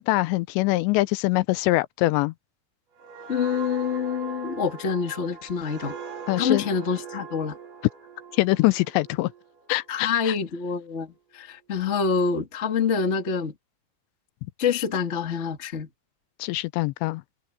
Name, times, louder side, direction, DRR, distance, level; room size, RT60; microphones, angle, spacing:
voice 1, 0.0-2.3 6.3-6.6 8.3-9.3 9.7-10.3 16.4-17.2, left 20 dB, 85° left, 2.8 m, -23 dB
sound 1, 3.0-10.4 10.8-11.1, right 6 dB, 75° right, 6.2 m, -41 dB
voice 2, 3.3-5.9 6.4-7.6 9.9-13.5 14.6-15.9, left 6 dB, 45° left, 0.9 m, -26 dB
omnidirectional pair, 5.1 m